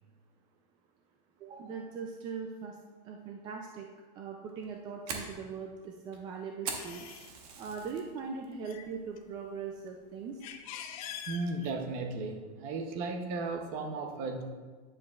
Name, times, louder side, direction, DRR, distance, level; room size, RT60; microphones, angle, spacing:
voice 1, 1.4-2.8 3.0-3.9 4.2-7.1 7.6-10.4, right 5 dB, 20° right, 2 dB, 0.3 m, -40 dB
Fire, 4.5-8.0 8.4-8.8 9.2-9.3 9.9-10.2, right 5 dB, 65° right, 1.2 m, -41 dB
sound 1, 6.8-7.3 8.0-8.2 8.5-9.6 10.1-12.0, left 9 dB, 60° left, 0.7 m, -44 dB
voice 2, 11.3-14.4, right 3 dB, 40° right, 5 dB, 0.8 m, -35 dB
9.6 x 7.3 x 2.4 m, 1.4 s
supercardioid pair, 165°, 21 cm